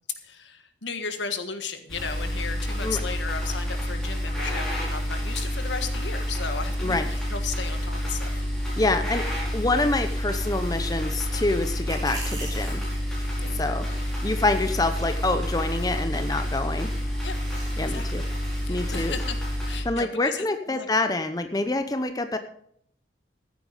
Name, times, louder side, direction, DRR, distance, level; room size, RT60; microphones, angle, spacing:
voice 1, 0.2-8.3 8.8-9.0 13.4-13.6 17.2-17.4 17.9-18.2 18.6-19.4 19.7-20.9, left 5 dB, 80° left, 8 dB, 1.5 m, -35 dB
sound 1, 1.9-19.8, equal, ahead, 5.1 m, -29 dB
voice 2, 8.8-9.2 9.5-12.8 13.5-13.9 14.2-16.9 17.8-18.2 18.7-19.1 19.8-22.4, left 2 dB, 20° left, 8 dB, 0.7 m, -26 dB
sound 2, 11.8-19.2, right 1 dB, 20° right, 6.8 m, -45 dB
14.5 x 9.3 x 5.1 m, 0.68 s
head